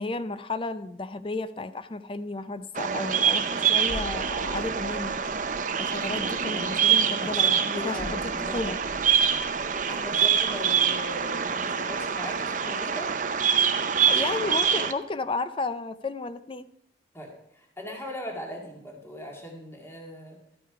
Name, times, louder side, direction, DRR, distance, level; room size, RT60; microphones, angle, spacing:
voice 1, 0.0-5.2 5.8-8.8 14.0-16.7, left 3 dB, 30° left, 12 dB, 0.5 m, -33 dB
Bird vocalization bird call bird song, 2.8-14.9, right 7 dB, 45° right, 0.7 m, -25 dB
voice 2, 3.4-3.9 6.5-8.6 9.9-13.1 13.7-13.9 17.1-20.4, left 1 dB, 15° left, 0 dB, 2.1 m, -40 dB
sound 1, 3.8-12.3 12.5-12.7, equal, 50° left, 1.9 m, -45 dB
12.5 x 8.9 x 4.8 m, 0.80 s
head